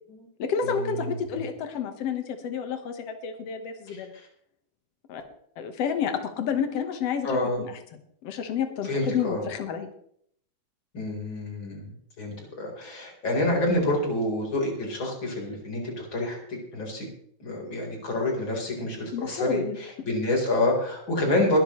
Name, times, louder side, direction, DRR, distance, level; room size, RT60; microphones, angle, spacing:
voice 1, 0.4-4.1 5.1-5.3 5.6-9.9 19.1-19.8, left 7 dB, 90° left, 6 dB, 1.3 m, -30 dB
voice 2, 7.2-7.6 8.8-9.4 10.9-11.9 12.2-16.4 16.7-17.1 17.4-21.6, left 1 dB, 30° left, 0 dB, 4.4 m, -27 dB
22.0 x 12.5 x 3.2 m, 0.66 s
omnidirectional pair, 5.0 m